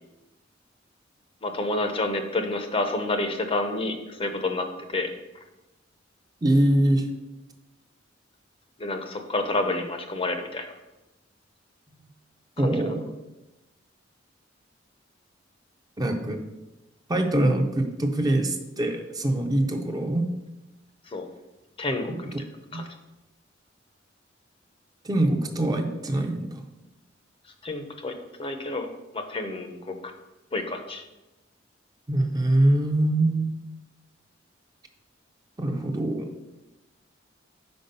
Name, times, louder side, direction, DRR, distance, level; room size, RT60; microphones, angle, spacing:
voice 1, 1.4-5.1 8.8-10.7 21.1-21.3 21.8-22.3 22.7-22.8 27.6-29.9 30.5-31.1, left 2 dB, 30° left, 6 dB, 0.6 m, -29 dB
voice 2, 6.4-7.1 11.9-12.0 12.6-13.0 16.0-16.4 17.1-20.3 22.1-22.2 22.7-22.8 25.0-26.7 32.1-33.6 35.6-36.3, right 1 dB, 20° right, 4 dB, 0.5 m, -24 dB
5.3 x 4.7 x 5.3 m, 1.0 s
head